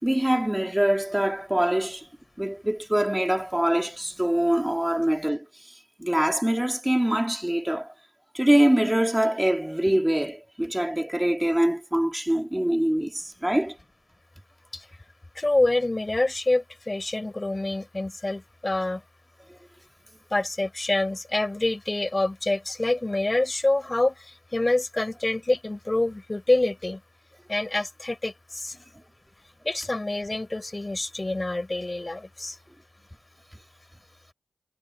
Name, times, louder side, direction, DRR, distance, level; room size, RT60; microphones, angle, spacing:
voice 1, 0.0-2.0 2.4-5.5 6.0-7.9 8.3-13.8, right 1 dB, 10° right, 3.8 m, -24 dB
voice 2, 15.3-19.0 20.3-27.0 27.5-28.8 29.6-32.6, left 2 dB, 30° left, 7.3 m, -26 dB
cardioid pair, 40°, 0 cm